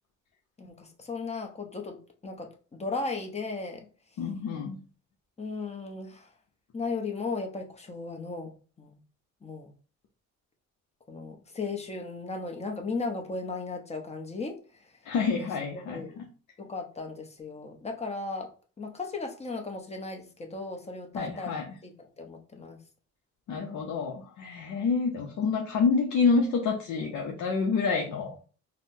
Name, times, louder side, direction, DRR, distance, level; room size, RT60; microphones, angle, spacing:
voice 1, 0.6-3.9 5.4-6.3 6.7-8.5 8.8-9.0 9.4-9.7 11.1-15.0 15.4-15.5 15.7-16.2 16.6-18.5 18.8-21.9 22.2-22.8, left 3 dB, 20° left, 3 dB, 0.7 m, -36 dB
voice 2, 4.2-4.8 15.0-16.3 21.1-21.6 23.5-28.4, left 5 dB, 70° left, 0 dB, 0.7 m, -28 dB
4.1 x 2.1 x 2.6 m, 0.38 s
cardioid pair, 90°, 30 cm